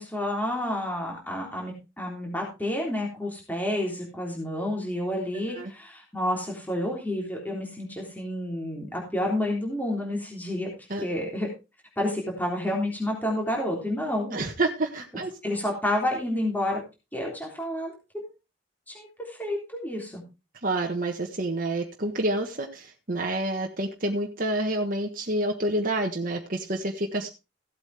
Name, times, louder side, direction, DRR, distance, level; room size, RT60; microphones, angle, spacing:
voice 1, 0.0-10.7 11.0-11.5 12.0-14.4 15.4-16.8 17.1-17.9 18.9-20.2, left 1 dB, 10° left, -1 dB, 3.5 m, -29 dB
voice 2, 14.3-15.3 20.6-27.3, right 1 dB, 45° right, 2 dB, 1.4 m, -28 dB
16.0 x 8.2 x 3.5 m, 0.28 s
head